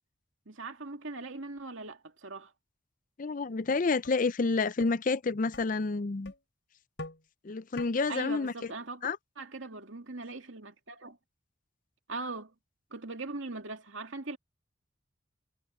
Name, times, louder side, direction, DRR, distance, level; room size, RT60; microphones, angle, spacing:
voice 1, 0.5-2.5 8.1-9.1 9.4-11.2 12.1-12.5 12.9-14.4, right 3 dB, 70° right, 2.4 m, -40 dB
voice 2, 3.2-6.3 7.4-8.5 9.0-9.2, left 4 dB, 40° left, 0.5 m, -29 dB
sound 1, 3.5-3.6 4.0-4.2 4.8-4.9 5.5-5.6 6.2-6.4 7.0-7.2 7.8-7.9, left 2 dB, 60° left, 7.6 m, -42 dB
head